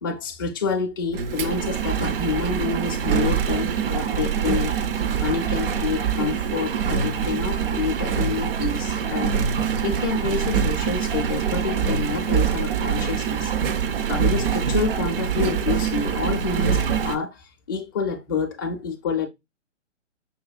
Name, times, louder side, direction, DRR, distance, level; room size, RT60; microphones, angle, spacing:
voice 1, 0.0-4.7 5.2-9.3 9.6-19.3, left 5 dB, 20° left, 0.4 m, -28 dB
Engine, 1.1-17.2, right 7 dB, 50° right, 0.4 m, -24 dB
5.6 x 2.2 x 2.3 m
hypercardioid pair, 135°, 37 cm